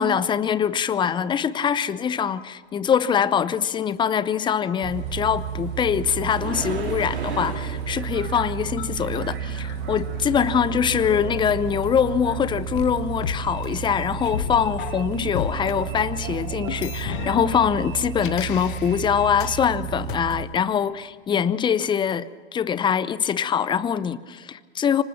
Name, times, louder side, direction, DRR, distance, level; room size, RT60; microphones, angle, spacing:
voice 1, 0.0-25.0, left 8 dB, 15° left, 0.8 m, -23 dB
Bus, 4.8-20.4, right 8 dB, 35° right, 4.6 m, -32 dB
sound 1, 5.0-10.3 14.2-14.3 14.9-15.0, right 4 dB, 80° right, 4.2 m, -37 dB
sound 2, 8.8-12.3 12.7-15.7 16.7-19.6 20.1-20.2, left 12 dB, 50° left, 1.1 m, -36 dB
26.5 x 25.0 x 5.9 m
figure-of-eight pair, 105°, 32 cm